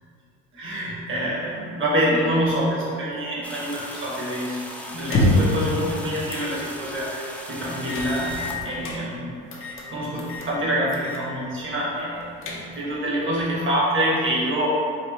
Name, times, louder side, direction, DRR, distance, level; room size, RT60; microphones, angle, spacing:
voice 1, 0.5-4.6 4.9-14.8, equal, 35° right, -5 dB, 1.1 m, -26 dB
sound 1, 3.4-8.6, left 1 dB, 5° left, 0.3 m, -38 dB
sound 2, 5.0-5.6 6.3-6.5 6.9-7.0 7.9-9.0 9.5-9.9 10.2-10.5 10.9-11.3 11.6-11.7 12.2-12.9, left 1 dB, 35° left, 0.7 m, -26 dB
4.3 x 2.4 x 2.9 m, 2.3 s
supercardioid pair, 95°, 36 cm